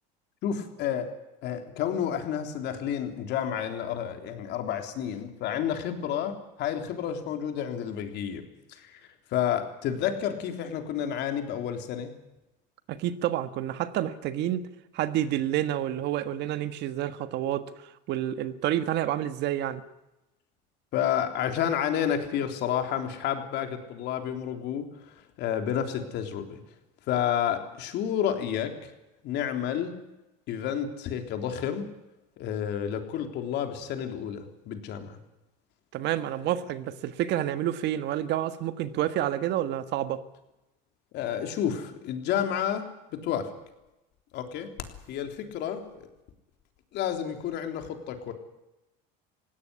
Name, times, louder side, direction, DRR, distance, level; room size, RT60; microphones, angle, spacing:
voice 1, 0.4-1.1 1.4-9.0 9.3-12.1 20.9-26.6 27.1-28.9 29.2-29.9 30.5-31.9 32.4-35.2 41.1-42.8 43.1-43.5 44.3-44.7 45.1-46.1 46.9-48.3, left 9 dB, 60° left, 3.5 m, -30 dB
voice 2, 12.9-14.7 14.9-19.8 35.9-40.2, right 12 dB, 55° right, 1.5 m, -29 dB
18.5 x 16.5 x 9.8 m
supercardioid pair, 125°, 20 cm